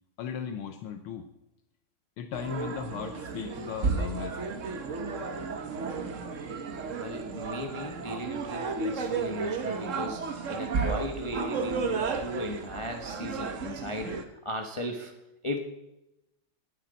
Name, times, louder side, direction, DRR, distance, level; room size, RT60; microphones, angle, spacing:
voice 1, 0.2-1.3 2.2-4.4, left 8 dB, 75° left, 8 dB, 1.6 m, -37 dB
sound 1, 2.3-14.2, right 4 dB, 50° right, 1.0 m, -33 dB
voice 2, 6.9-15.1 15.4-15.6, left 1 dB, 35° left, 3 dB, 0.5 m, -36 dB
20.0 x 8.6 x 4.0 m, 0.91 s
omnidirectional pair, 2.4 m